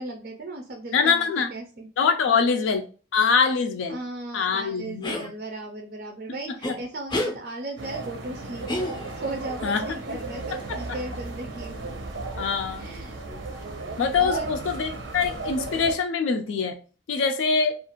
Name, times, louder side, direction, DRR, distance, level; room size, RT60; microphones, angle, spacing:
voice 1, 0.0-1.9 3.9-8.7 9.2-11.9 12.8-13.2 14.2-14.5, right 2 dB, 50° right, 1 dB, 0.4 m, -36 dB
voice 2, 0.9-1.5 2.0-2.9 3.1-4.0 4.3-5.3 9.6-9.8 12.4-12.9 14.0-16.8 17.1-17.7, left 5 dB, 90° left, 6 dB, 0.3 m, -24 dB
sound 1, 5.0-5.3 6.6-6.8 7.1-7.4 8.7-9.3, left 1 dB, 25° left, 0.4 m, -29 dB
sound 2, 7.8-15.9, right 3 dB, 85° right, 0.7 m, -35 dB
2.4 x 2.4 x 2.9 m, 0.37 s
head